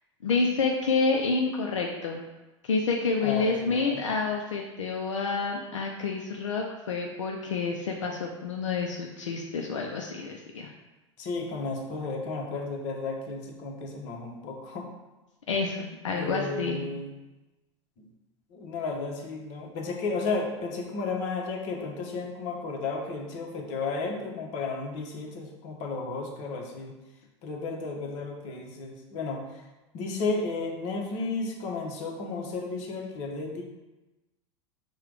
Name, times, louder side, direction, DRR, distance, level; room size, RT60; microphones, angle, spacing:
voice 1, 0.2-2.2 2.6-10.7 15.5-16.8, left 4 dB, 85° left, 0 dB, 0.5 m, -28 dB
voice 2, 3.2-4.0 11.2-14.9 16.1-17.1 18.0-18.1 18.5-26.9 27.4-29.6 29.9-33.6, left 3 dB, 50° left, 0 dB, 1.0 m, -33 dB
4.7 x 2.3 x 4.7 m, 1.1 s
hypercardioid pair, 90°, 15 cm